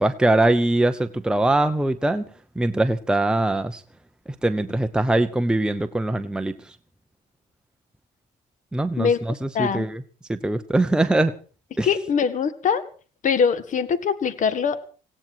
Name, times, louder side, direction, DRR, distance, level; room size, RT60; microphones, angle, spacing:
voice 1, 0.0-2.2 2.6-3.8 4.4-6.5 8.7-10.0 10.3-11.3 11.8-11.9, right 2 dB, 5° right, 8 dB, 0.9 m, -22 dB
voice 2, 9.0-9.9 11.8-12.8 13.2-14.9, left 6 dB, 50° left, 14 dB, 1.9 m, -23 dB
18.5 x 16.5 x 4.7 m, 0.39 s
cardioid pair, 110°, 17 cm